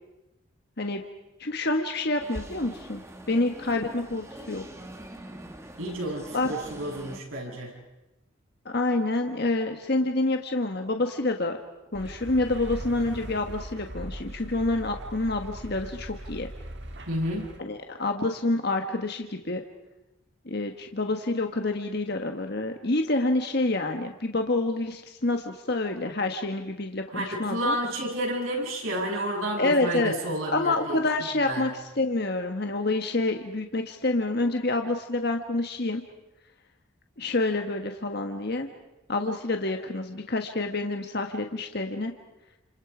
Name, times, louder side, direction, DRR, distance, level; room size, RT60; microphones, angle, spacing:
voice 1, 1.4-3.0 3.3-4.6 6.3-6.5 8.6-11.6 11.9-16.5 17.6-19.6 20.4-27.8 29.6-30.1 30.5-31.7 32.0-36.0 37.2-38.7 39.1-42.1, left 2 dB, 50° left, 4 dB, 1.4 m, -27 dB
sound 1, 2.2-7.2, right 1 dB, 15° right, 1.4 m, -43 dB
voice 2, 5.8-7.7 17.1-17.5 27.1-31.0 31.5-31.7, equal, 75° right, -2 dB, 7.8 m, -30 dB
sound 2, 11.9-17.6, right 1 dB, 55° right, 1.7 m, -40 dB
29.5 x 28.0 x 5.0 m, 0.96 s
head